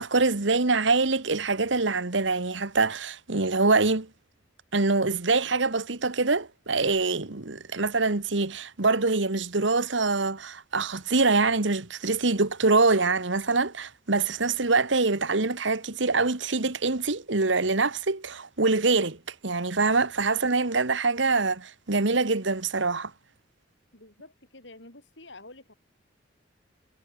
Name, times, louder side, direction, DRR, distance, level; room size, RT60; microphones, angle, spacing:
voice 1, 0.0-4.1 4.7-19.2 19.4-23.1, right 3 dB, 70° right, 1.6 m, -24 dB
voice 2, 23.9-25.7, left 2 dB, 65° left, 7.5 m, -48 dB
head